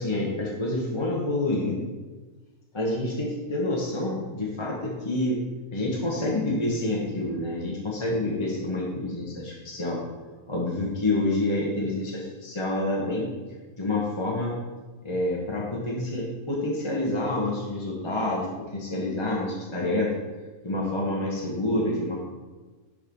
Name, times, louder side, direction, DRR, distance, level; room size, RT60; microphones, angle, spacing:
voice 1, 0.0-1.8 2.7-5.4 5.7-10.0 10.5-13.3 13.8-14.6 15.0-18.5 18.7-20.1 20.6-22.2, left 1 dB, 25° left, -4 dB, 1.0 m, -28 dB
6.3 x 5.0 x 5.3 m, 1.3 s
omnidirectional pair, 1.3 m